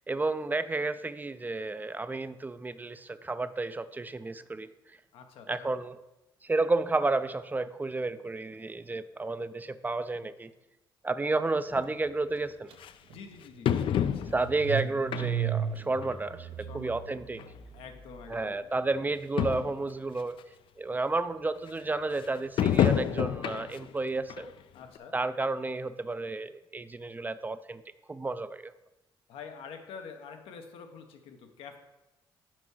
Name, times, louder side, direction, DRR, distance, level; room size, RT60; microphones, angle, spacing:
voice 1, 0.1-4.7 5.5-6.0 6.4-10.5 11.0-12.7 14.3-17.4 18.3-20.4 20.8-24.5 25.1-27.8 28.1-28.7, right 3 dB, 20° right, 13 dB, 0.4 m, -31 dB
voice 2, 5.1-5.7 13.1-14.3 16.6-17.0 17.7-18.7 24.7-25.2 29.3-31.8, left 6 dB, 90° left, 5 dB, 0.9 m, -47 dB
sound 1, 11.7-11.8 12.8-12.9 13.7-14.6 15.1-15.6 16.0-16.2 17.1-17.2 17.4-17.5 18.3-18.4 18.7-18.8 19.1-19.2 19.4-19.8 20.4-20.5 22.6-23.9 24.3-24.5 25.0-25.1, left 9 dB, 65° left, 0.4 m, -28 dB
Car / Engine starting, 12.7-12.8 13.1-18.3, right 9 dB, 75° right, 0.7 m, -36 dB
6.0 x 4.6 x 6.2 m, 0.98 s
cardioid pair, 90°, 9 cm